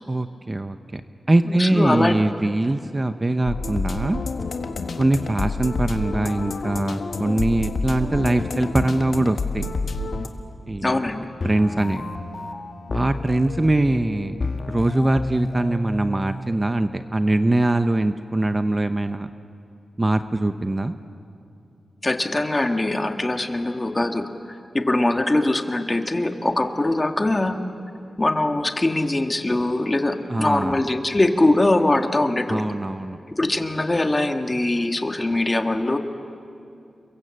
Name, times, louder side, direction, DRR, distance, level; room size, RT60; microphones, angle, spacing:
voice 1, 0.1-1.0 1.3-4.2 5.0-9.7 10.7-11.0 11.4-12.0 12.9-19.3 20.0-21.0 30.3-30.8 32.5-33.2, right 2 dB, 20° right, 9 dB, 0.7 m, -22 dB
voice 2, 1.5-2.1 10.8-11.3 22.0-24.3 24.7-27.6 28.2-32.7 33.3-36.0, left 2 dB, 25° left, 5 dB, 1.7 m, -22 dB
sound 1, 3.5-10.3, left 3 dB, 70° left, 1.6 m, -28 dB
sound 2, 11.4-17.4, left 2 dB, 50° left, 1.3 m, -31 dB
29.0 x 23.5 x 7.7 m, 2.6 s
wide cardioid pair, 100°, 0 cm